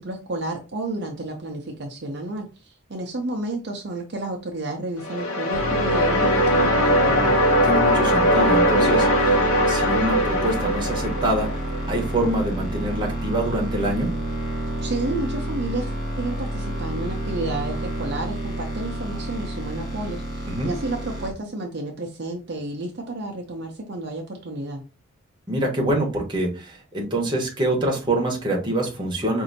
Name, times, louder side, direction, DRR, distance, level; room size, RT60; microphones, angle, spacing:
voice 1, 0.0-7.4 14.8-24.8, right 2 dB, 50° right, 1 dB, 0.6 m, -31 dB
sound 1, 5.0-12.0, equal, 85° left, 1.0 m, -20 dB
sound 2, 5.5-21.3, right 1 dB, 5° right, 1.4 m, -30 dB
voice 2, 7.6-9.4 9.7-14.1 20.5-20.7 25.5-29.4, right 1 dB, 20° right, 0 dB, 1.1 m, -25 dB
5.0 x 2.7 x 2.7 m, 0.31 s
head